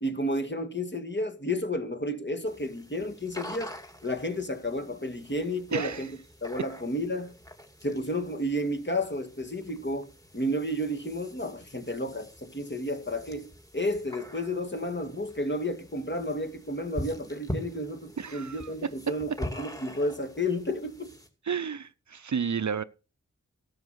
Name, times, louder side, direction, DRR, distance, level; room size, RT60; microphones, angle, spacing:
voice 1, 0.0-3.7 4.0-6.1 6.4-7.3 7.8-21.1, left 1 dB, 35° left, 1.9 m, -32 dB
sound 1, 2.5-21.3, equal, 10° left, 2.4 m, -44 dB
voice 2, 5.7-6.1 18.2-18.7 21.5-22.8, right 6 dB, 60° right, 0.6 m, -31 dB
12.0 x 7.2 x 6.3 m
wide cardioid pair, 45°, 32 cm